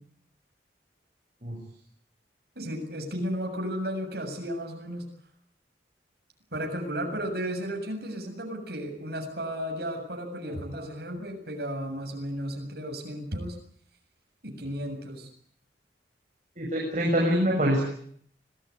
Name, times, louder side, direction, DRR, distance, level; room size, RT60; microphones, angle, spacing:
voice 1, 2.6-5.0 6.5-13.6 14.4-15.3, equal, 60° right, 3 dB, 7.3 m, -34 dB
voice 2, 16.6-17.8, equal, 40° right, -1 dB, 6.8 m, -25 dB
26.0 x 19.0 x 9.8 m, 0.64 s
head